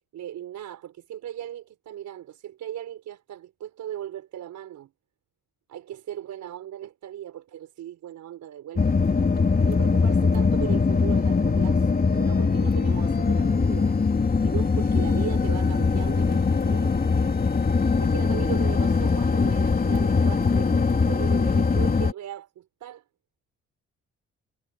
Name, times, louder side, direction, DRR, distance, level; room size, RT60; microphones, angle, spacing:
voice 1, 0.1-4.9 5.7-9.0 9.6-14.0 14.4-17.3 18.0-23.0, right 11 dB, 75° right, 5.0 m, -38 dB
sound 1, 8.8-22.1, left 4 dB, 30° left, 2.9 m, -22 dB
cardioid pair, 90°, 30 cm